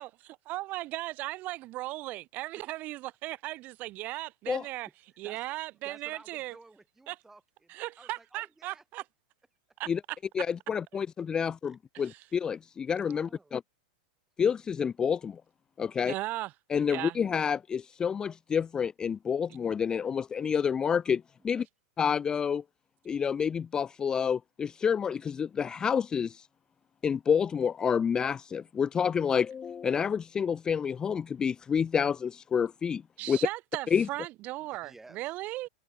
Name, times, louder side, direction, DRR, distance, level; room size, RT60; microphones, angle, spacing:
voice 1, 0.0-4.9 5.2-6.5 7.1-7.2 7.7-9.0 9.8-10.2 11.9-12.3 16.1-16.5 16.9-17.2 33.2-35.7, right 18 dB, 40° right, 4.9 m, -37 dB
voice 2, 5.2-5.6 5.8-8.8 11.7-12.0 13.0-13.5 15.8-16.1 21.4-21.7 33.2-33.4 34.6-35.3, right 2 dB, 5° right, 7.3 m, -55 dB
voice 3, 10.4-13.6 14.4-15.4 15.8-16.1 16.7-21.6 22.0-22.6 23.1-26.5 27.0-33.0 33.3-33.4 33.9-34.1, left 7 dB, 15° left, 0.4 m, -29 dB
open air
supercardioid pair, 140°, 4 cm